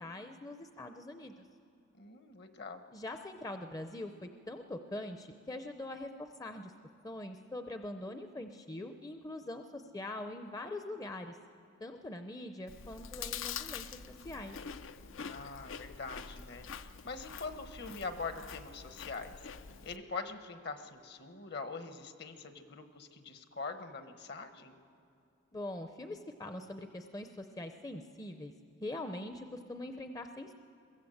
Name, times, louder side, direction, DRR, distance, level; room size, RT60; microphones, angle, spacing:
voice 1, 0.0-1.4 2.9-6.7 7.0-11.4 11.8-14.6 25.5-28.5 28.8-30.5, left 1 dB, 20° left, 7 dB, 0.6 m, -43 dB
voice 2, 2.0-2.8 15.2-19.3 19.8-24.7, left 4 dB, 55° left, 8 dB, 1.2 m, -43 dB
Chewing mastication, 12.7-20.0, left 7 dB, 75° left, 0.6 m, -45 dB
22.5 x 15.0 x 7.8 m, 2.6 s
head